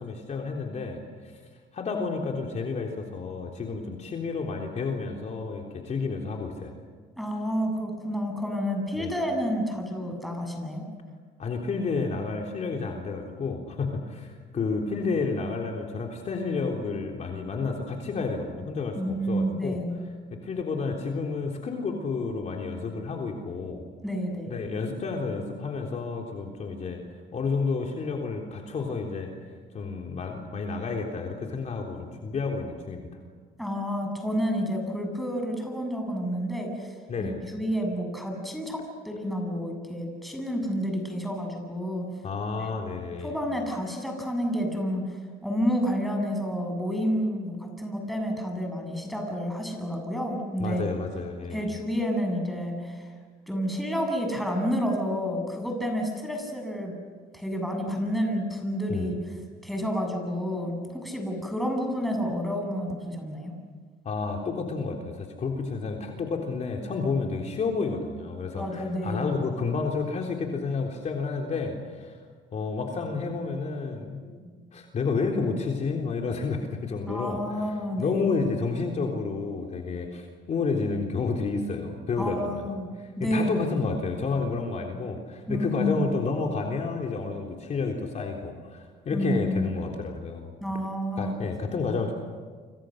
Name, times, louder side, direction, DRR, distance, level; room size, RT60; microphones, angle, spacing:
voice 1, 0.0-1.4 1.7-6.7 9.0-9.1 11.4-19.8 20.4-23.8 24.5-27.0 27.3-29.3 29.7-33.1 37.1-37.4 42.2-43.3 50.6-51.7 58.9-59.1 64.1-72.2 72.5-77.4 78.0-82.6 83.0-90.5 91.2-92.1, left 4 dB, 45° left, 1 dB, 3.7 m, -30 dB
voice 2, 7.2-10.9 19.0-20.0 24.0-24.6 33.6-36.9 37.2-42.1 42.6-42.7 43.2-45.1 45.4-50.8 51.5-53.0 53.5-56.9 57.3-59.2 59.6-63.5 68.5-69.3 77.1-78.3 82.2-82.9 83.2-83.6 85.5-86.1 89.1-89.7 90.6-91.3, equal, ahead, 2 dB, 7.7 m, -29 dB
29.0 x 27.0 x 6.6 m, 1.5 s
cardioid pair, 110°, 17 cm